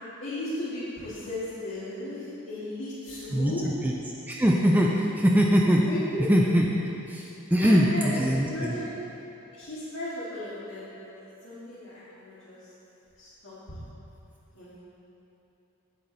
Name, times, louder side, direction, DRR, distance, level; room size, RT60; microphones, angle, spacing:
voice 1, 0.2-3.6 5.9-6.2 7.6-8.9 9.5-12.6 13.2-13.8 14.6-14.8, left 1 dB, 55° left, -12 dB, 2.0 m, -36 dB
voice 2, 3.3-3.9 4.3-5.9 6.3-6.7 7.1-8.8, equal, 10° right, -1 dB, 0.4 m, -22 dB
9.8 x 8.2 x 4.0 m, 3.0 s
head